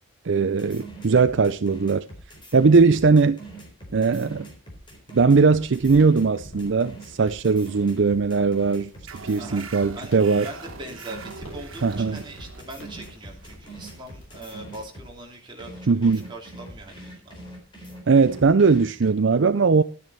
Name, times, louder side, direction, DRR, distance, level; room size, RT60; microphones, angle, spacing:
voice 1, 0.2-2.1 2.5-3.4 3.9-4.4 5.1-8.9 9.2-10.5 11.8-12.2 15.9-16.2 18.1-19.8, right 4 dB, 60° right, 0.5 m, -19 dB
sound 1, 0.6-15.1 15.6-19.1, right 2 dB, 25° left, 4.1 m, -43 dB
sound 2, 5.2-14.9, equal, 65° left, 6.5 m, -49 dB
sound 3, 9.1-16.2, right 4 dB, 80° right, 1.3 m, -44 dB
voice 2, 9.4-10.2 10.4-17.4, right 1 dB, 20° right, 3.0 m, -41 dB
12.5 x 9.4 x 4.2 m
head